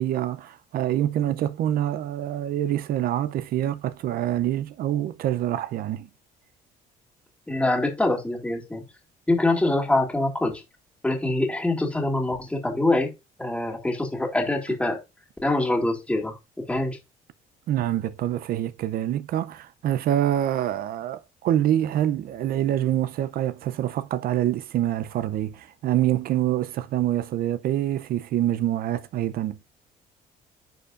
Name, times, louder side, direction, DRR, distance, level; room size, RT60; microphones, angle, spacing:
voice 1, 0.0-6.1 17.7-29.6, right 12 dB, 60° right, 0.5 m, -26 dB
voice 2, 7.5-8.8 9.3-10.6 11.0-13.1 13.4-15.0 15.4-16.4 16.7-17.0, left 2 dB, 5° left, 2.1 m, -24 dB
10.0 x 4.5 x 2.5 m
cardioid pair, 110°, 17 cm